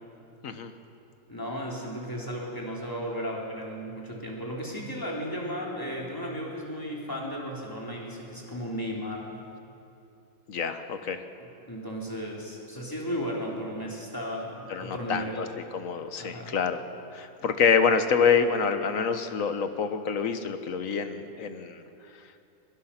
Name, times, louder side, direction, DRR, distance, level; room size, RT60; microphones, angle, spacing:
voice 1, 1.3-9.4 11.4-15.4 16.2-16.5, equal, 10° left, -3 dB, 3.3 m, -35 dB
voice 2, 10.5-11.2 14.7-15.5 15.7-16.8 17.1-21.8, left 6 dB, 50° left, 9 dB, 1.3 m, -26 dB
23.0 x 21.5 x 5.8 m, 2.7 s
omnidirectional pair, 2.0 m